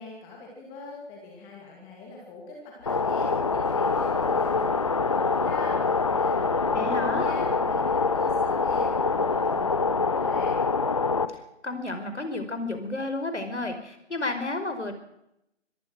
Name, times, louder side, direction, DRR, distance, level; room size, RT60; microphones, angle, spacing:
voice 1, 0.0-10.6, left 3 dB, 10° left, -1 dB, 2.5 m, -44 dB
sound 1, 2.8-9.5, right 2 dB, 35° right, 5.6 m, -52 dB
sound 2, 2.9-11.3, left 4 dB, 25° left, 0.9 m, -25 dB
voice 2, 6.7-7.3 11.6-15.0, left 2 dB, 70° left, 8 dB, 5.2 m, -31 dB
25.5 x 18.0 x 6.2 m, 0.82 s
figure-of-eight pair, 155°, 36 cm